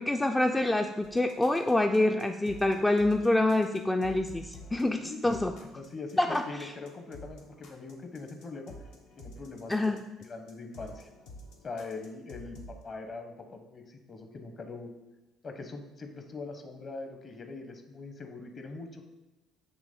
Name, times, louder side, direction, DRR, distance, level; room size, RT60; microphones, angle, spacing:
voice 1, 0.0-5.5 6.2-6.7 9.7-10.0, left 2 dB, 15° left, 5 dB, 0.4 m, -26 dB
sound 1, 1.0-12.8, left 1 dB, 80° left, 1.0 m, -50 dB
voice 2, 4.8-5.2 5.7-8.7 9.2-10.0 10.2-11.1 11.6-12.6 12.8-14.9 15.4-19.0, left 3 dB, 45° left, 5 dB, 1.0 m, -42 dB
6.2 x 3.1 x 5.2 m, 1.0 s
hypercardioid pair, 60°, 0 cm